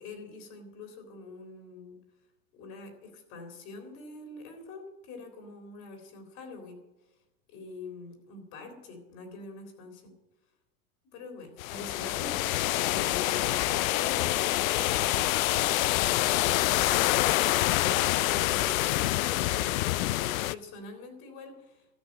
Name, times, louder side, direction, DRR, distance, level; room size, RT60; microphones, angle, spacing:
voice 1, 0.0-2.0 2.5-6.8 7.5-10.1 11.1-12.4 12.9-15.4 15.9-21.9, left 3 dB, 50° left, 4 dB, 3.7 m, -45 dB
sound 1, 11.6-20.5, left 16 dB, 80° left, 0.5 m, -26 dB
13.5 x 6.1 x 9.5 m, 1.0 s
supercardioid pair, 145°, 41 cm